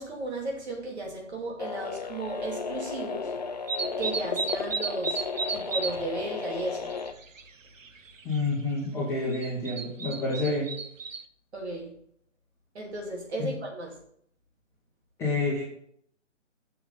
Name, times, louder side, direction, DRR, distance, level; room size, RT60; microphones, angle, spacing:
voice 1, 0.0-3.3 4.0-5.2 5.5-6.9 11.5-11.9 12.7-14.0, right 2 dB, 60° right, -1 dB, 3.0 m, -34 dB
sound 1, 1.6-7.1, left 5 dB, 35° left, 0.5 m, -34 dB
sound 2, 3.7-6.0 6.3-7.5 7.8-8.4 9.3-11.2, right 4 dB, 85° right, 0.8 m, -33 dB
voice 2, 8.2-10.7 13.4-13.6 15.2-15.6, left 2 dB, 5° left, -6 dB, 1.6 m, -28 dB
7.1 x 5.8 x 5.5 m, 0.66 s
figure-of-eight pair, 150°, 38 cm